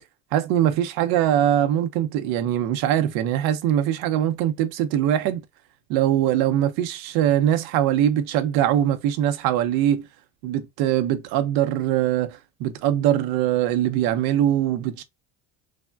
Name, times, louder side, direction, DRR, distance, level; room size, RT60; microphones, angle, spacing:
voice 1, 0.3-5.4 5.9-10.0 10.4-15.0, right 11 dB, 65° right, 0.6 m, -22 dB
3.5 x 2.1 x 2.3 m
cardioid pair, 145°, 39 cm